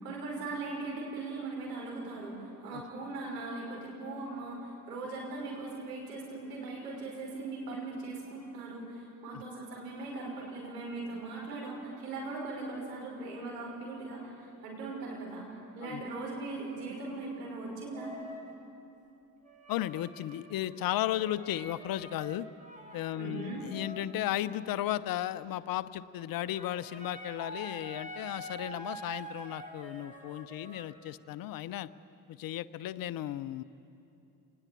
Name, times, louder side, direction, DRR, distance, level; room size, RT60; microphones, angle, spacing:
voice 1, 0.0-15.5 15.7-18.1 23.1-23.7, right 3 dB, 80° right, -2 dB, 5.9 m, -39 dB
sound 1, 17.9-18.6 19.4-25.1 26.3-31.0, right 1 dB, 15° right, 4.3 m, -47 dB
voice 2, 19.7-22.5 22.9-31.9 32.3-33.6, left 13 dB, 45° left, 15 dB, 0.9 m, -35 dB
28.0 x 20.0 x 8.6 m, 2.8 s
figure-of-eight pair, 50°, 47 cm